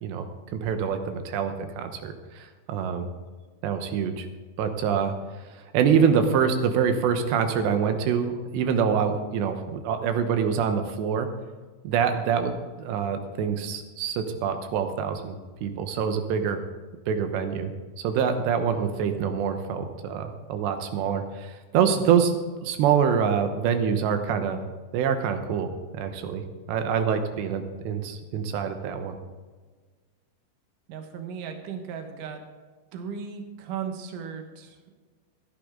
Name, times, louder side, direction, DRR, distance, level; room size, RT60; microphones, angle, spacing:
voice 1, 0.5-3.1 3.6-4.3 4.6-5.1 5.5-11.3 11.8-12.5 12.8-16.6 17.1-17.7 18.0-24.6 24.9-25.7 26.0-29.2, right 7 dB, 75° right, 7 dB, 3.2 m, -25 dB
voice 2, 30.9-32.4 32.9-34.8, right 7 dB, 60° right, 5 dB, 2.5 m, -36 dB
15.5 x 11.5 x 3.8 m, 1.4 s
omnidirectional pair, 5.2 m